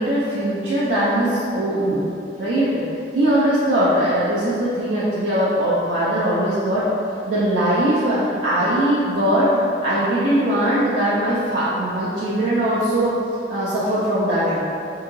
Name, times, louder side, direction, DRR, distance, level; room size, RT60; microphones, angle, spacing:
voice 1, 0.0-2.0 2.4-2.8 3.1-6.9 7.2-9.5 9.8-13.1 13.5-14.6, right 1 dB, 75° right, -9 dB, 0.5 m, -20 dB
2.8 x 2.7 x 3.7 m, 2.6 s
head